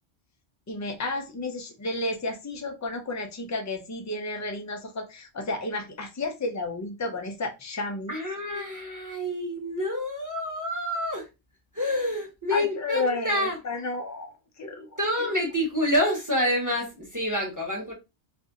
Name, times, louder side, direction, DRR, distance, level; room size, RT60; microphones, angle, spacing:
voice 1, 0.7-8.1 12.5-14.9, left 2 dB, 30° left, 0.3 m, -32 dB
voice 2, 8.1-11.3 11.7-13.6 15.0-17.9, equal, 15° right, 0.9 m, -28 dB
2.6 x 2.6 x 3.5 m
omnidirectional pair, 1.3 m